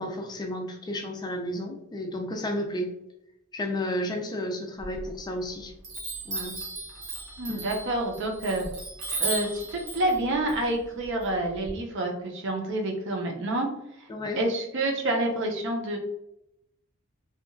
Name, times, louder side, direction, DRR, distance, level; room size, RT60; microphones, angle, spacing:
voice 1, 0.0-2.9 3.5-5.7 6.3-6.5 7.5-7.6 14.1-14.4, left 1 dB, 20° left, 2 dB, 0.3 m, -32 dB
Chime, 4.8-5.5 5.8-11.7, right 2 dB, 90° right, 1.0 m, -35 dB
voice 2, 7.4-8.7 9.2-13.7 14.4-16.0, right 1 dB, 60° right, 2 dB, 0.6 m, -28 dB
2.8 x 2.3 x 2.4 m, 0.83 s
head